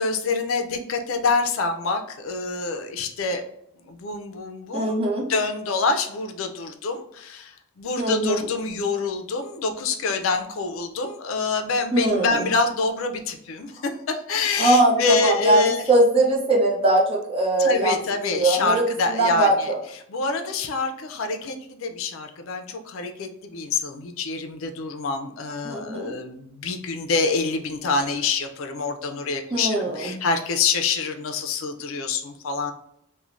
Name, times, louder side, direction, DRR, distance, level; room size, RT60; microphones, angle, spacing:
voice 1, 0.0-3.4 3.9-15.9 17.6-19.7 20.1-32.7, left 4 dB, 70° left, 6 dB, 0.4 m, -26 dB
voice 2, 4.7-5.3 8.0-8.4 11.9-12.4 14.6-18.0 18.3-19.8 25.6-26.1 29.5-30.1, right 2 dB, 30° right, -2 dB, 0.7 m, -21 dB
3.1 x 2.1 x 2.5 m, 0.74 s
head